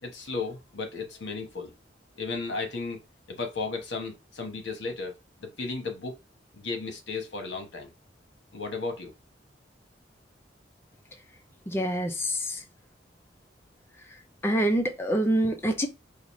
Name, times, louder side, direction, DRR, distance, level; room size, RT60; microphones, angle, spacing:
voice 1, 0.0-1.7 2.1-3.0 3.3-5.1 5.4-6.2 6.5-7.9 8.5-9.1, left 4 dB, 80° left, 1.1 m, -34 dB
voice 2, 11.7-12.6 14.4-15.9, right 1 dB, 15° left, 0.5 m, -26 dB
5.0 x 2.5 x 3.1 m
head